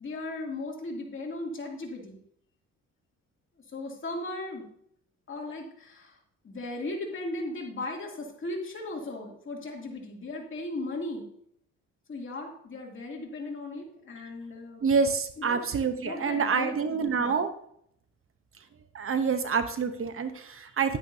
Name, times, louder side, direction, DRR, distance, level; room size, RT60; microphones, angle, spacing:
voice 1, 0.0-2.2 3.7-4.6 5.3-6.2 6.4-11.3 12.1-14.9 15.4-15.6 16.0-17.4, left 2 dB, 40° left, -1 dB, 2.7 m, -37 dB
voice 2, 14.8-17.5 18.9-21.0, right 5 dB, 45° right, 9 dB, 0.9 m, -27 dB
10.5 x 9.6 x 2.7 m, 0.70 s
cardioid pair, 90°, 30 cm